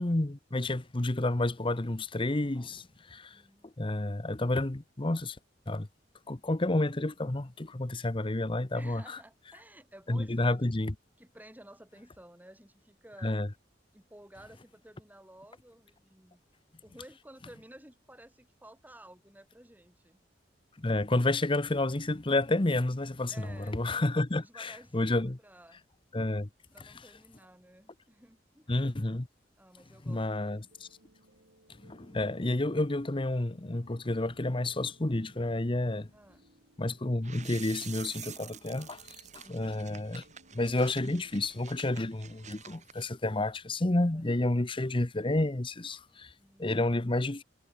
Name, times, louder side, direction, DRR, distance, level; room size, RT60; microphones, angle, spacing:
voice 1, 0.0-5.4 5.7-5.9 6.3-9.2 10.1-10.9 13.2-13.5 20.8-25.4 26.1-26.5 28.7-29.3 30.1-30.9 31.8-36.1 36.8-39.0 39.3-40.2 40.5-46.3 46.6-47.4, left 2 dB, 30° left, 0.9 m, -30 dB
voice 2, 3.3-3.7 8.7-10.6 11.2-13.4 13.9-16.4 16.8-20.2 23.3-23.8 24.4-25.8 26.7-28.8 29.6-30.4 36.1-36.5 39.4-39.9 44.1-44.2 46.4-46.8, right 1 dB, 10° right, 6.5 m, -54 dB
sound 1, 30.6-42.5, right 1 dB, 85° right, 7.1 m, -65 dB
sound 2, 37.2-43.0, right 9 dB, 40° right, 6.4 m, -48 dB
head